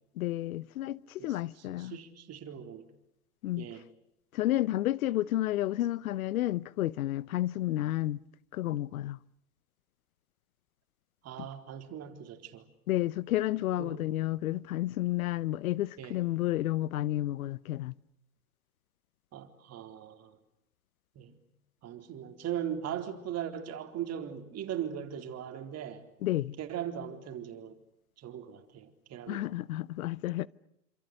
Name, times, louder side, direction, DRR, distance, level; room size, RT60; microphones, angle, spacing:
voice 1, 0.2-2.0 3.4-3.6 4.3-8.2 8.5-9.2 11.4-11.5 12.9-17.9 26.2-26.5 29.3-30.5, left 15 dB, 65° left, 0.9 m, -31 dB
voice 2, 1.8-2.9 3.6-3.8 11.2-12.7 13.8-14.1 16.0-16.2 19.3-20.4 21.2-21.4 21.8-26.1 26.6-27.8 28.2-29.4, right 9 dB, 35° right, 4.1 m, -39 dB
28.0 x 27.5 x 6.6 m
hypercardioid pair, 100°, 46 cm